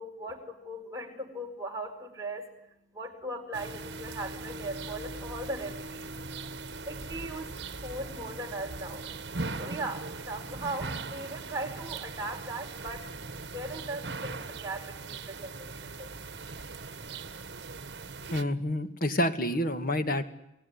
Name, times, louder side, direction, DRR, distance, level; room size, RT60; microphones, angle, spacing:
voice 1, 0.0-2.5 2.9-6.1 6.9-9.0 9.6-13.0 13.5-16.1, right 1 dB, 15° right, 1 dB, 5.1 m, -38 dB
sound 1, 3.5-18.4, right 3 dB, 60° right, 1.6 m, -40 dB
voice 2, 18.3-20.2, left 1 dB, 50° left, 9 dB, 2.2 m, -28 dB
28.5 x 18.0 x 9.9 m, 0.87 s
head